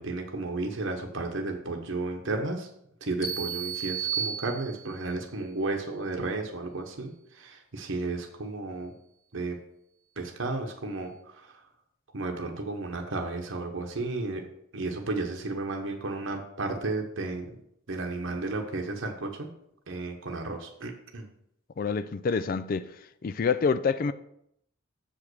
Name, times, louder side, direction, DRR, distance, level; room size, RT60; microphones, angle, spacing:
voice 1, 0.0-2.7 3.0-8.9 9.3-9.6 10.2-11.1 11.4-11.6 12.1-14.5 14.7-17.5 17.9-19.5 19.9-21.3, right 3 dB, 65° right, 1.0 m, -33 dB
sound 1, 3.2-5.1, right 7 dB, 15° left, 1.5 m, -33 dB
voice 2, 21.8-22.9 23.2-24.1, left 5 dB, 45° left, 0.3 m, -27 dB
7.1 x 5.1 x 6.1 m
head